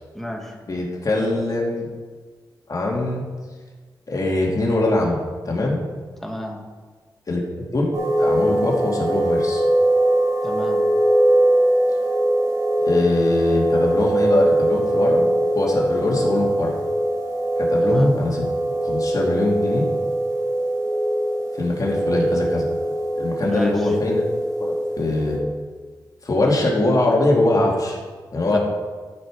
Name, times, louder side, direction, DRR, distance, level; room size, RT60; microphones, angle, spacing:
voice 1, 0.1-0.6 6.2-6.6 10.4-10.8 17.8-18.1 23.4-23.7 28.5-28.6, equal, 5° left, 1 dB, 1.7 m, -31 dB
voice 2, 0.7-1.9 2.7-3.2 4.1-5.2 5.4-5.8 7.3-7.4 7.7-7.9 8.2-9.6 12.8-15.3 15.5-16.7 17.6-18.4 18.7-19.9 21.6-22.7 23.2-24.2 24.6-25.4 26.2-28.0 28.3-28.6, left 2 dB, 45° left, -2 dB, 2.7 m, -22 dB
sound 1, 7.9-25.4, right 1 dB, 45° right, 2.8 m, -21 dB
14.5 x 5.5 x 4.9 m, 1.5 s
cardioid pair, 75°, 8 cm